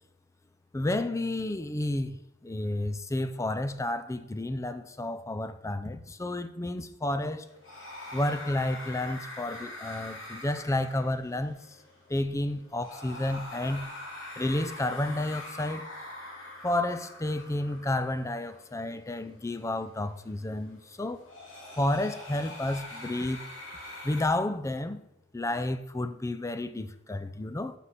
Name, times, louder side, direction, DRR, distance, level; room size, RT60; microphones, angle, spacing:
voice 1, 0.7-2.2 2.4-7.4 8.1-11.6 12.1-13.9 14.4-15.9 16.6-21.2 21.8-23.4 24.0-25.0 25.3-27.7, left 1 dB, 15° left, 0.5 m, -31 dB
sound 1, 7.4-24.3, left 1 dB, 75° left, 3.2 m, -44 dB
9.6 x 6.1 x 4.2 m
head